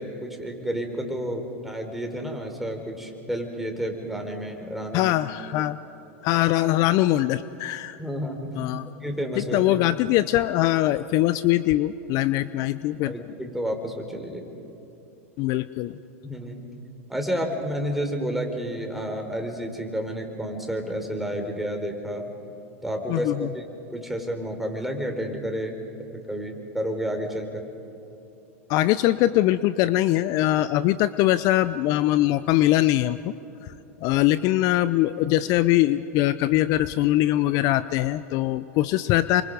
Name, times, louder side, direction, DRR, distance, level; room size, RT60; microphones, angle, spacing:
voice 1, 0.0-5.2 8.0-8.5 9.0-9.6 13.0-14.4 16.2-16.6 17.1-22.3 22.8-23.6 23.9-25.8 26.1-27.7, equal, ahead, 3 dB, 4.0 m, -30 dB
voice 2, 4.9-5.8 6.2-8.0 8.5-8.9 9.4-13.1 15.4-16.0 23.1-23.5 28.7-33.3 33.6-33.7 34.0-39.4, left 15 dB, 50° left, 15 dB, 0.6 m, -22 dB
27.5 x 25.0 x 5.3 m, 3.0 s
hypercardioid pair, 95°, 8 cm